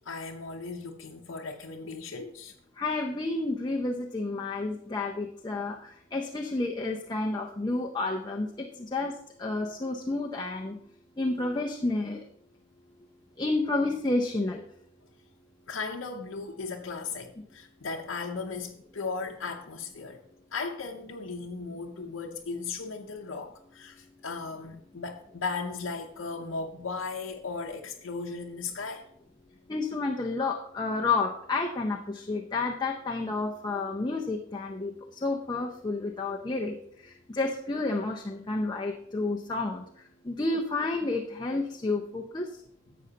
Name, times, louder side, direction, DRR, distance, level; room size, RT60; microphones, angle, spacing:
voice 1, 0.0-2.5 15.0-15.1 15.7-20.2 20.5-29.0, left 4 dB, 85° left, 0.7 m, -36 dB
voice 2, 2.8-10.8 11.2-12.2 13.4-14.6 29.7-39.8 40.2-42.5, left 3 dB, 20° left, 0.6 m, -30 dB
11.5 x 7.7 x 2.8 m
head